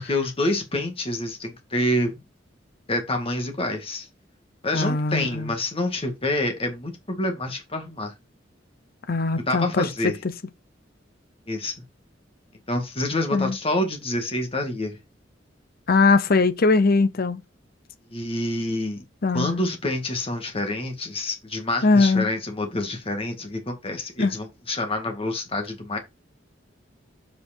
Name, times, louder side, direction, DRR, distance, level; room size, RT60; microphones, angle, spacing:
voice 1, 0.0-2.2 2.9-4.1 4.6-8.1 9.4-10.2 11.5-11.7 12.7-15.0 18.1-19.0 19.3-26.0, left 1 dB, 30° left, 2.1 m, -27 dB
voice 2, 4.7-5.5 9.1-10.1 13.3-13.6 15.9-17.4 19.2-19.6 21.8-22.3 24.2-24.3, left 3 dB, 55° left, 0.7 m, -20 dB
7.6 x 5.1 x 4.4 m
head